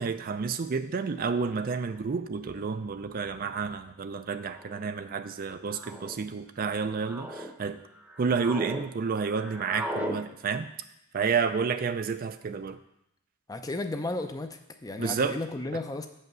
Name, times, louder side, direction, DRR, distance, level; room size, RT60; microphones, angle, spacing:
voice 1, 0.0-7.8 8.2-10.7 11.1-12.8 15.0-15.4, right 5 dB, 40° right, 10 dB, 0.4 m, -30 dB
sound 1, 2.1-2.2 3.2-3.5 4.4-4.8 5.7-6.2 6.8-7.5 7.9-8.8 9.1-10.2, equal, 5° right, 0.8 m, -38 dB
voice 2, 13.5-16.1, left 2 dB, 15° left, 7 dB, 0.5 m, -34 dB
8.0 x 5.4 x 6.1 m, 0.83 s
head